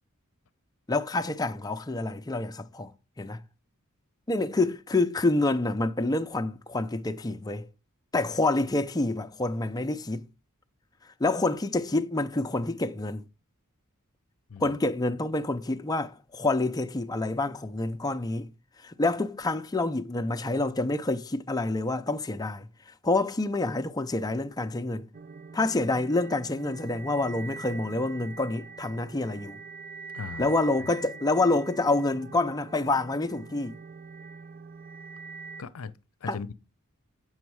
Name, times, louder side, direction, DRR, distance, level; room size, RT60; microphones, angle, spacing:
voice 1, 0.9-2.9 3.2-3.4 4.3-7.7 8.1-10.2 11.2-13.2 14.6-18.5 18.8-22.7 23.0-25.1 25.5-29.6 30.4-33.7 36.3-36.4, left 2 dB, 20° left, 0.5 m, -27 dB
sound 1, 25.1-35.6, right 4 dB, 40° right, 0.5 m, -44 dB
voice 2, 30.1-30.5 35.6-35.9 36.2-36.5, left 5 dB, 70° left, 0.6 m, -38 dB
7.9 x 6.4 x 4.7 m
head